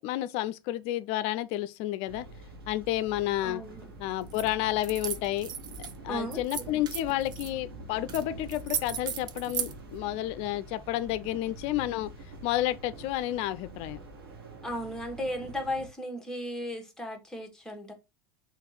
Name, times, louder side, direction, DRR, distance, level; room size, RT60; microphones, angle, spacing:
voice 1, 0.0-2.3 2.7-3.6 4.0-5.5 6.0-12.1 12.4-14.0, left 14 dB, 55° left, 0.4 m, -30 dB
sound 1, 2.1-15.9, right 2 dB, 90° right, 1.2 m, -46 dB
voice 2, 3.4-3.9 6.1-6.4 14.6-17.9, equal, 5° left, 1.3 m, -35 dB
sound 2, 4.3-4.5 4.8-5.9 6.3-7.5 8.1-8.2 8.5-9.7, right 8 dB, 35° right, 0.6 m, -35 dB
3.6 x 2.5 x 3.9 m
hypercardioid pair, 95°, 13 cm